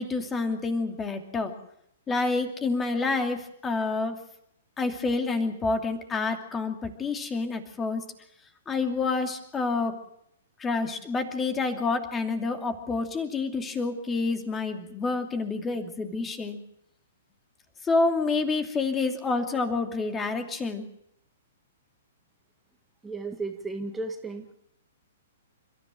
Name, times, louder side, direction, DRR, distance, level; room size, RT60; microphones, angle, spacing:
voice 1, 0.0-1.5 2.1-4.2 4.8-8.0 8.7-10.0 10.6-16.6 17.8-20.9, left 3 dB, 15° left, 6 dB, 2.6 m, -28 dB
voice 2, 23.0-24.6, right 3 dB, 10° right, 4 dB, 1.9 m, -34 dB
30.0 x 14.5 x 7.5 m, 0.74 s
figure-of-eight pair, 115°, 0 cm